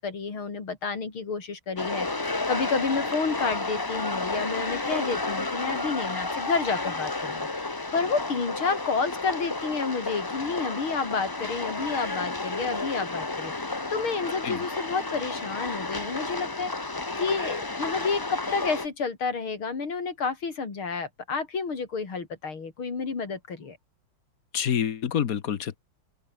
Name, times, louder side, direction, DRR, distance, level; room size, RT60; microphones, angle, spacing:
voice 1, 0.0-16.7 17.2-23.8, left 5 dB, 70° left, 4.4 m, -30 dB
sound 1, 1.8-18.9, left 2 dB, 30° left, 0.4 m, -31 dB
voice 2, 24.5-25.8, left 8 dB, 50° left, 1.3 m, -27 dB
open air
omnidirectional pair, 2.4 m